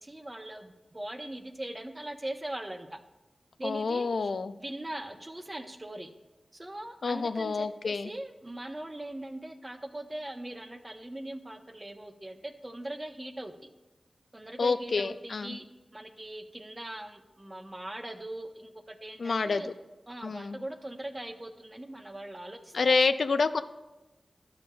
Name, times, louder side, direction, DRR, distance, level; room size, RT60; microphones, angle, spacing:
voice 1, 0.0-3.0 3.6-4.3 4.6-6.1 6.5-13.7 14.3-15.7 15.9-19.7 20.1-23.0, right 1 dB, 30° right, 6 dB, 0.7 m, -40 dB
voice 2, 3.6-4.5 7.0-8.1 14.6-15.6 19.2-19.7 20.2-20.6 22.7-23.6, left 4 dB, 80° left, 11 dB, 0.3 m, -28 dB
12.0 x 6.6 x 2.3 m, 1.1 s
cardioid pair, 45°, 0 cm